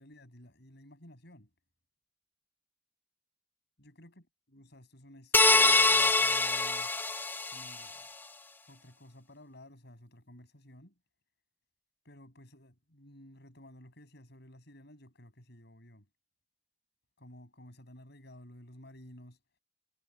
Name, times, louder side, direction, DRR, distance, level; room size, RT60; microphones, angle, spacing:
voice 1, 0.0-1.5 3.8-6.9 7.5-8.2 8.7-10.9 12.0-16.1 17.2-19.4, left 1 dB, 60° left, 6.7 m, -54 dB
sound 1, 5.3-7.8, left 3 dB, 10° left, 0.5 m, -24 dB
head